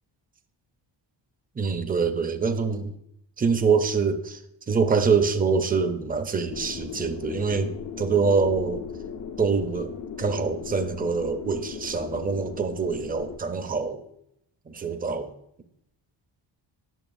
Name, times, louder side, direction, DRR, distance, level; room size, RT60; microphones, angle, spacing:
voice 1, 1.6-2.9 3.4-4.4 4.7-8.8 9.4-9.9 10.2-14.0 14.7-15.3, right 5 dB, 20° right, 8 dB, 0.5 m, -25 dB
sound 1, 6.5-13.4, left 7 dB, 45° left, 0.4 m, -37 dB
9.0 x 6.3 x 2.5 m, 0.77 s
wide cardioid pair, 140°, 47 cm